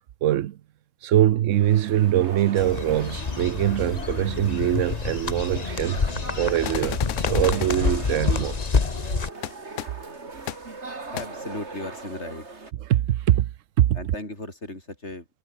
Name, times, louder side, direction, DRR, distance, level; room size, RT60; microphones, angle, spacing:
voice 1, 0.2-0.6 1.0-8.6 12.9-13.5 13.8-14.0, right 12 dB, 85° right, 1.0 m, -23 dB
sound 1, 1.5-12.7, right 3 dB, 65° right, 3.2 m, -41 dB
sound 2, 2.6-9.3, left 5 dB, 35° left, 1.1 m, -27 dB
sound 3, 6.6-7.8 9.4-9.5 9.8-9.9 10.5-10.6 11.2-11.3, left 13 dB, 80° left, 1.0 m, -32 dB
voice 2, 11.1-12.5 13.9-15.3, left 2 dB, 65° left, 6.1 m, -36 dB
omnidirectional pair, 1.3 m